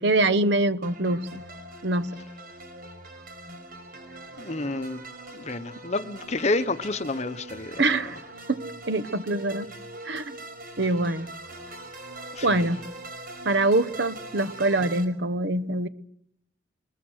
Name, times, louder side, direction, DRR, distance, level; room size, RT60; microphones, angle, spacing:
voice 1, 0.0-1.4 1.8-2.1 7.8-8.2 8.5-9.7 10.0-10.2 10.8-11.3 12.4-12.8 13.4-15.9, right 2 dB, 70° right, 1.0 m, -24 dB
sound 1, 0.8-15.1, right 2 dB, 55° right, 5.0 m, -42 dB
voice 2, 4.4-5.0 5.3-7.8 12.3-12.7, left 2 dB, 40° left, 1.0 m, -29 dB
24.0 x 21.0 x 6.4 m
head